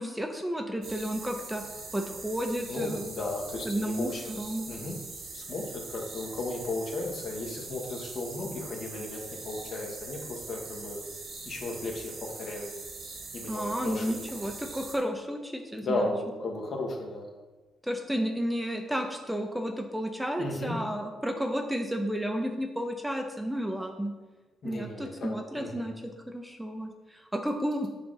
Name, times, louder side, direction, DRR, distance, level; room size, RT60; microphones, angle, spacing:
voice 1, 0.0-1.6 1.9-3.0 3.7-4.7 13.5-16.1 17.8-24.1 24.6-25.9 26.3-27.9, equal, 5° right, 4 dB, 0.5 m, -32 dB
sound 1, 0.8-15.0, right 3 dB, 55° right, 1.3 m, -42 dB
voice 2, 2.7-4.4 4.7-5.0 5.3-11.0 11.4-12.7 13.3-14.4 15.8-17.3 20.4-20.8 24.6-25.3 25.6-25.9, left 2 dB, 55° left, 0 dB, 1.3 m, -35 dB
7.0 x 2.5 x 5.5 m, 1.3 s
cardioid pair, 90°, 0 cm